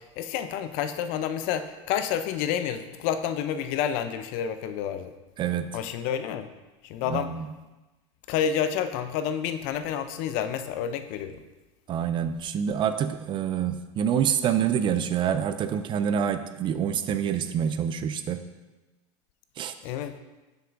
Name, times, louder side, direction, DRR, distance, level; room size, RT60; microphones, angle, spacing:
voice 1, 0.0-5.1 5.7-6.5 6.8-7.3 8.3-11.4 19.8-20.2, left 9 dB, 55° left, 9 dB, 0.5 m, -29 dB
voice 2, 5.4-5.8 7.1-7.5 11.9-18.4 19.6-19.7, right 8 dB, 30° right, 10 dB, 0.4 m, -27 dB
6.9 x 6.5 x 2.5 m, 1.1 s
supercardioid pair, 120°, 16 cm